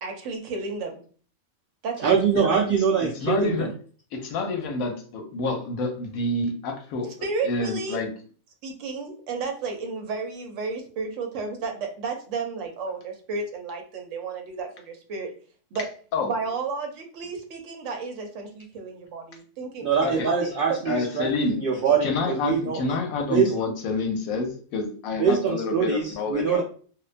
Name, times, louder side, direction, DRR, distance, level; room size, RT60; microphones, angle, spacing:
voice 1, 0.0-1.0 1.8-2.6 7.2-8.0 8.6-15.3 15.7-15.9 16.2-19.8 20.3-21.0, right 4 dB, 65° right, 4 dB, 0.9 m, -32 dB
voice 2, 2.0-3.7 19.8-22.8 23.3-23.5 25.2-26.6, right 6 dB, 85° right, -1 dB, 0.4 m, -23 dB
voice 3, 3.0-3.7 4.1-7.1 7.4-8.1 16.1-16.3 20.0-20.3 20.9-21.6 22.0-26.6, left 3 dB, 85° left, 3 dB, 1.0 m, -28 dB
2.5 x 2.2 x 2.4 m, 0.42 s
omnidirectional pair, 1.5 m